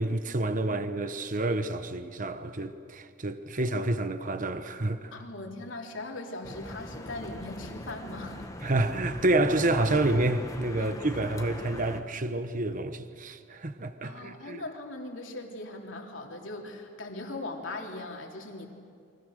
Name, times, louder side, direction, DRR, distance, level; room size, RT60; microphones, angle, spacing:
voice 1, 0.0-5.1 8.6-14.6, right 2 dB, 40° right, 1.1 m, -29 dB
voice 2, 5.1-8.7 10.8-11.0 14.0-18.7, left 2 dB, 75° left, 3.3 m, -40 dB
sound 1, 6.4-12.0, left 1 dB, 20° left, 1.4 m, -40 dB
29.5 x 24.5 x 6.6 m
head